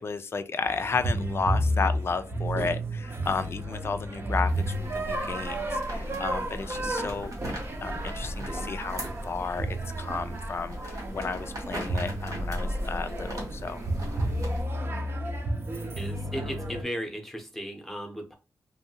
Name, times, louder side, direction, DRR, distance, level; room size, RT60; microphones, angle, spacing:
voice 1, 0.0-7.3 7.8-9.0 9.3-13.8, left 4 dB, 45° left, 0.3 m, -33 dB
sound 1, 0.6-16.8, right 1 dB, 45° right, 0.7 m, -32 dB
sound 2, 4.5-14.6, equal, 80° right, 1.3 m, -37 dB
voice 2, 16.0-18.3, equal, 5° left, 0.7 m, -36 dB
2.6 x 2.6 x 2.8 m
wide cardioid pair, 100°, 6 cm